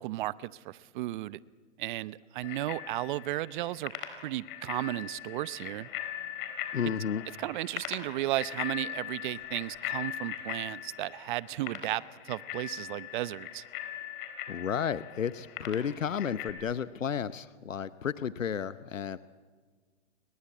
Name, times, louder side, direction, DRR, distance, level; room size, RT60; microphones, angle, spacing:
voice 1, 0.0-1.4 1.8-3.9 4.2-5.9 7.4-13.6, right 16 dB, 40° right, 19 dB, 0.8 m, -34 dB
Bicycle bell, 2.4-16.5, left 11 dB, 45° left, 4.3 m, -40 dB
voice 2, 6.7-7.2 14.5-19.2, left 7 dB, 90° left, 15 dB, 0.9 m, -32 dB
30.0 x 22.5 x 8.6 m, 1.5 s
hypercardioid pair, 125°, 38 cm